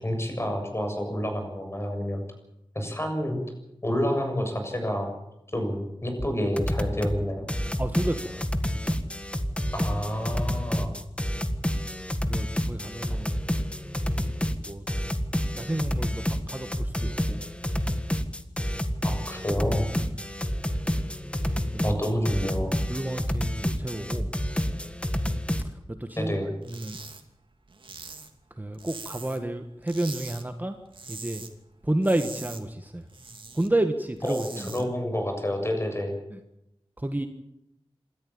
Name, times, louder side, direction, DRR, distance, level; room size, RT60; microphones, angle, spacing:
voice 1, 0.0-2.2 2.7-3.4 3.8-5.1 5.5-7.5 9.7-10.9 19.0-19.9 21.8-22.7 26.2-26.5 34.2-36.2, equal, 25° left, 4 dB, 7.1 m, -29 dB
sound 1, 6.2-6.3 6.6-7.2 7.5-25.7, equal, 10° left, 1.7 m, -29 dB
voice 2, 7.8-8.9 12.3-13.3 14.6-14.8 15.6-17.5 19.9-20.3 21.4-22.0 22.9-24.3 25.9-26.4 26.7-27.0 28.5-30.8 31.1-31.4 31.8-33.1 33.5-34.7 36.3-36.4 37.0-37.3, right 1 dB, 20° right, 6 dB, 1.5 m, -31 dB
sound 2, 26.6-27.2 27.5-29.5 29.8-30.4 30.8-31.5 31.8-33.7 34.1-34.8, right 3 dB, 60° right, 2.8 m, -42 dB
27.5 x 13.5 x 8.7 m, 0.85 s
wide cardioid pair, 80°, 10 cm